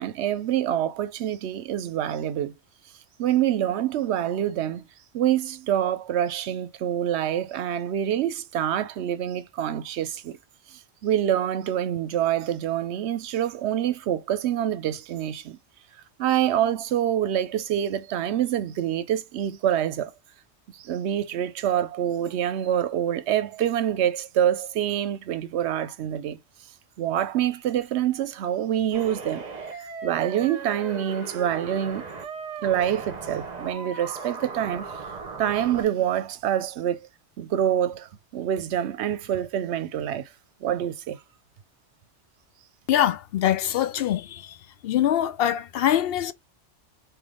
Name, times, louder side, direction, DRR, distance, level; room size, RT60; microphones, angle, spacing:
voice 1, 0.0-2.5 3.2-4.8 5.1-10.4 11.0-15.6 16.2-20.1 20.7-26.4 27.0-29.5 29.8-32.0 32.6-34.9 35.4-37.1 37.4-38.1 38.3-40.3 40.6-41.2, right 10 dB, 75° right, 0.8 m, -26 dB
sound 1, 28.9-35.8, right 4 dB, 40° right, 0.8 m, -37 dB
voice 2, 42.9-44.6 44.8-46.3, left 11 dB, 65° left, 0.7 m, -23 dB
3.4 x 3.0 x 3.7 m
omnidirectional pair, 1.2 m